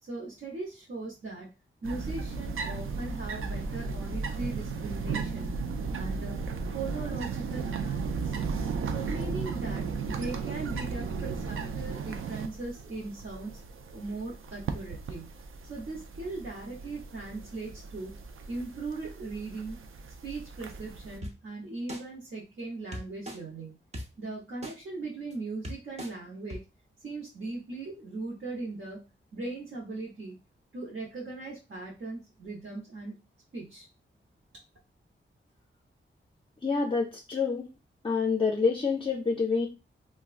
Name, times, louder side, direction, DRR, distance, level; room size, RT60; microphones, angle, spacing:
voice 1, 0.0-1.5 1.8-5.5 5.9-6.4 6.7-8.4 8.8-13.6 13.9-15.4 15.7-18.1 18.5-19.9 20.2-23.8 24.2-26.6 27.0-29.0 29.3-30.4 30.7-33.2 33.5-33.9, right 3 dB, 65° right, -4 dB, 0.9 m, -39 dB
sound 1, 1.8-21.2, right 5 dB, 85° right, 0.4 m, -35 dB
sound 2, 21.2-21.3 21.9-22.0 22.9-23.4 23.9-24.0 24.6-24.7 25.3-25.4 25.6-26.1 26.5-26.6, equal, 30° right, 0.6 m, -37 dB
voice 2, 36.6-37.7 38.0-39.7, left 4 dB, 25° left, 1 dB, 0.4 m, -27 dB
3.4 x 2.2 x 2.4 m, 0.28 s
wide cardioid pair, 105°, 21 cm